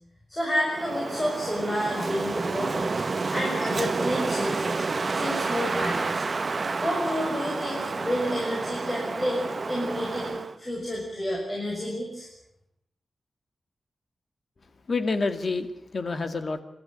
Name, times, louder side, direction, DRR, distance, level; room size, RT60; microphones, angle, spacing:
voice 1, 0.3-2.9 3.3-4.8 5.1-6.2 6.8-12.3, equal, 15° left, -3 dB, 6.5 m, -30 dB
Wind, 0.7-10.6, right 4 dB, 40° right, 1.1 m, -30 dB
voice 2, 14.9-16.6, left 3 dB, 45° left, 9 dB, 2.1 m, -28 dB
29.0 x 13.0 x 9.9 m, 0.78 s
wide cardioid pair, 155°, 0 cm